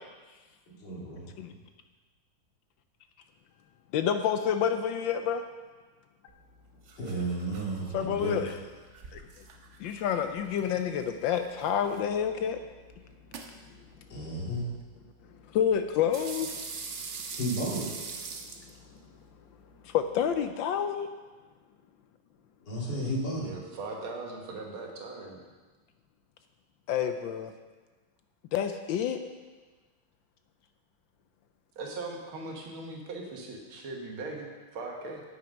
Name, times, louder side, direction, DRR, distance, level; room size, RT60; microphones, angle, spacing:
voice 1, 0.7-1.3 7.0-8.5 14.1-14.6 17.3-17.9 22.6-23.5, right 1 dB, 55° left, -5 dB, 3.1 m, -33 dB
voice 2, 3.9-5.4 7.9-8.5 9.1-9.2 9.8-12.6 15.5-16.6 19.8-21.1 26.9-27.5 28.5-29.2, left 8 dB, 75° left, 7 dB, 1.2 m, -28 dB
sound 1, 6.3-20.5, right 4 dB, 55° right, 0.8 m, -45 dB
voice 3, 23.4-25.4 31.8-35.2, right 3 dB, 75° right, 0 dB, 2.3 m, -39 dB
9.0 x 9.0 x 5.2 m, 1.3 s
omnidirectional pair, 2.3 m